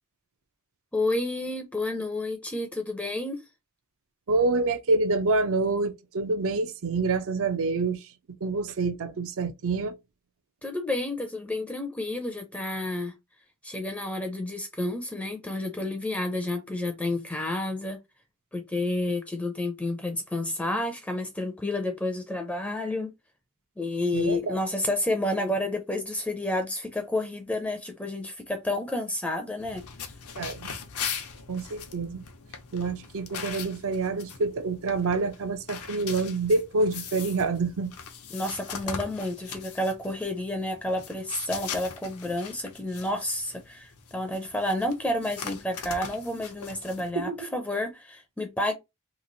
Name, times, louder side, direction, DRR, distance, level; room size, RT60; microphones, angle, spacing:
voice 1, 0.9-3.4 10.6-13.1 13.6-18.0 18.5-23.1 23.8-29.8 38.3-48.7, left 1 dB, 5° left, 0.5 m, -30 dB
voice 2, 4.3-8.1 8.4-10.0 24.1-24.6 30.4-30.8 31.5-32.2 32.7-37.9 47.1-47.4, right 3 dB, 65° right, 0.6 m, -27 dB
sound 1, 29.6-47.1, left 6 dB, 75° left, 0.8 m, -40 dB
3.1 x 2.4 x 3.9 m
head